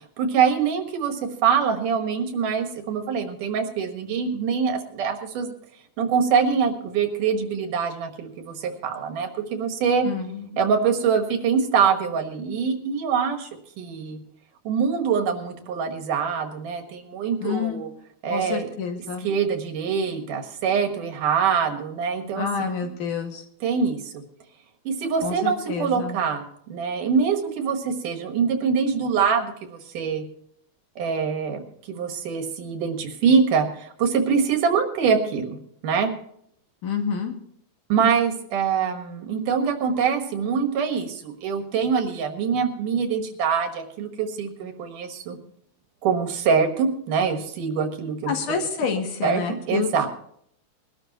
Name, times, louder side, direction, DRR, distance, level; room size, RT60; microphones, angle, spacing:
voice 1, 0.2-5.5 6.0-10.1 10.6-13.5 13.8-14.2 14.6-17.9 18.2-18.7 19.2-22.5 23.6-24.2 24.8-30.2 31.0-35.6 35.8-36.1 37.9-45.4 46.0-48.3 49.2-50.1, right 6 dB, 85° right, 5 dB, 3.1 m, -24 dB
voice 2, 10.0-10.5 17.4-17.8 18.3-19.3 22.4-23.4 25.2-26.2 36.8-37.3 48.3-50.1, left 6 dB, 80° left, 2 dB, 3.6 m, -28 dB
21.5 x 12.5 x 3.0 m, 0.67 s
omnidirectional pair, 3.6 m